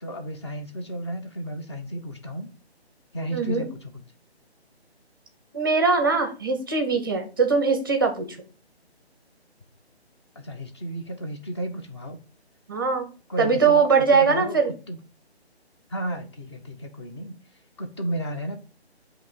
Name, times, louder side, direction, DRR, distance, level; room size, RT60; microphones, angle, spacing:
voice 1, 0.0-2.5 3.1-4.0 10.4-12.2 13.3-14.6 14.9-15.0 15.9-17.4 17.8-18.6, right 1 dB, 25° left, 4 dB, 0.7 m, -33 dB
voice 2, 3.3-3.6 5.5-8.3 12.7-13.1 13.4-14.7, right 5 dB, 20° right, 4 dB, 0.6 m, -21 dB
7.5 x 3.0 x 4.2 m, 0.35 s
figure-of-eight pair, 150°, 33 cm